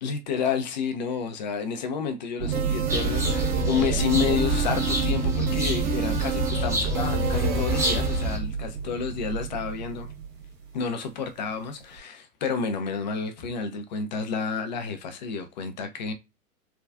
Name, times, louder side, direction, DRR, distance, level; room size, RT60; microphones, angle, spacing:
voice 1, 0.0-10.1 10.7-16.1, left 6 dB, 35° left, 0.4 m, -30 dB
sound 1, 2.4-10.6 12.0-12.1, right 6 dB, 50° right, 1.6 m, -30 dB
sound 2, 2.5-8.3, right 9 dB, 75° right, 0.8 m, -32 dB
sound 3, 2.9-8.4, equal, 5° right, 0.6 m, -28 dB
3.3 x 2.2 x 2.4 m
figure-of-eight pair, 110°, 44 cm